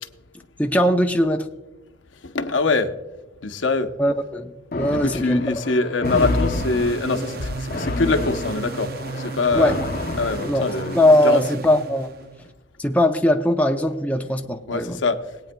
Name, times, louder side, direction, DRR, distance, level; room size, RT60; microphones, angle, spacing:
voice 1, 0.6-1.5 4.0-5.4 9.5-9.8 10.4-12.2 12.8-15.0, left 1 dB, 10° left, 0.5 m, -20 dB
voice 2, 2.3-2.9 3.4-3.9 4.9-8.9 9.3-9.7 10.2-11.4 14.7-15.2, left 3 dB, 90° left, 0.8 m, -23 dB
sound 1, 4.7-11.1, left 2 dB, 50° left, 0.7 m, -29 dB
sound 2, 6.0-12.5, right 4 dB, 55° right, 0.5 m, -34 dB
21.5 x 9.0 x 2.2 m
head